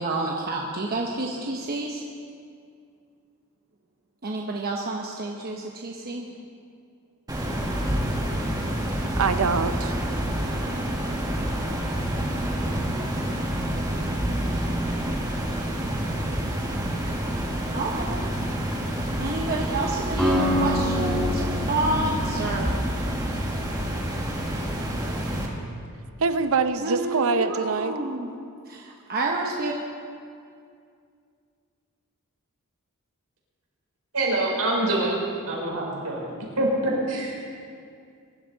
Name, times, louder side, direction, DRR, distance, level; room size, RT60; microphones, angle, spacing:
voice 1, 0.0-2.0 4.2-6.3 17.7-18.3 19.2-22.8 26.8-28.3 28.7-29.8, right 2 dB, 45° right, -1 dB, 1.0 m, -29 dB
sound 1, 7.3-25.5, right 1 dB, 20° right, 1.7 m, -28 dB
voice 2, 9.2-10.1 26.2-27.9, right 4 dB, 65° right, 10 dB, 0.7 m, -24 dB
Acoustic guitar, 20.2-24.3, left 1 dB, 5° left, 3.9 m, -27 dB
voice 3, 34.1-35.2 35.5-36.2 36.6-37.5, right 1 dB, 85° right, -3 dB, 4.3 m, -25 dB
22.0 x 12.0 x 4.1 m, 2.3 s
head